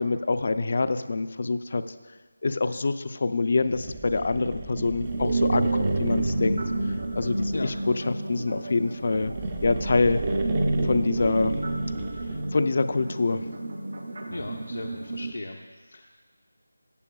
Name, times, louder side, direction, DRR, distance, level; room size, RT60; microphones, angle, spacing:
voice 1, 0.0-1.8 2.4-6.6 7.1-9.3 9.6-10.2 10.8-11.6 12.5-13.5, left 3 dB, 40° left, 12 dB, 0.4 m, -25 dB
sound 1, 3.6-8.0 8.9-12.6, right 3 dB, 20° right, 0.5 m, -36 dB
sound 2, 5.0-15.3, right 2 dB, 55° right, 0.8 m, -29 dB
voice 2, 14.3-16.1, left 2 dB, 85° left, 0 dB, 0.8 m, -37 dB
14.0 x 8.4 x 2.3 m, 1.4 s
figure-of-eight pair, 175°, 0 cm